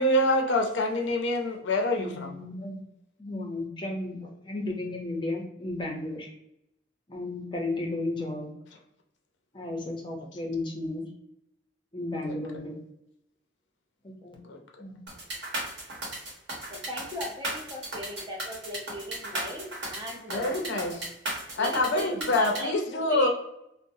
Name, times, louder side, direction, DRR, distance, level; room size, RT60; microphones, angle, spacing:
voice 1, 0.0-2.3 12.2-12.3 14.4-14.6 20.3-20.9 21.6-23.3, left 1 dB, 75° left, 2 dB, 0.5 m, -26 dB
voice 2, 2.0-2.8 3.2-6.3 7.1-8.5 9.5-11.1 11.9-12.8 14.0-14.4 14.8-15.0, left 2 dB, 25° left, 0 dB, 0.6 m, -34 dB
sound 1, 15.1-22.6, right 1 dB, 65° right, 1.0 m, -35 dB
voice 3, 16.7-20.6 21.6-23.3, equal, 20° right, -1 dB, 0.6 m, -38 dB
2.9 x 2.0 x 2.6 m, 0.80 s
head